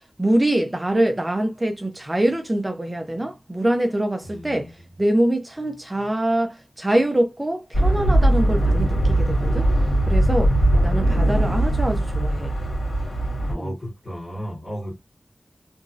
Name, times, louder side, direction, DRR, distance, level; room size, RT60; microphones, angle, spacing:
voice 1, 0.2-4.7 5.0-9.7 10.1-10.5 10.8-12.5 13.5-13.7, right 1 dB, 25° right, 0.5 m, -24 dB
voice 2, 4.2-4.7 10.7-11.3 13.5-15.0, equal, 35° left, 1.7 m, -35 dB
sound 1, 7.7-13.5, right 1 dB, 75° left, 1.7 m, -20 dB
3.0 x 2.5 x 2.4 m
wide cardioid pair, 85°, 0 cm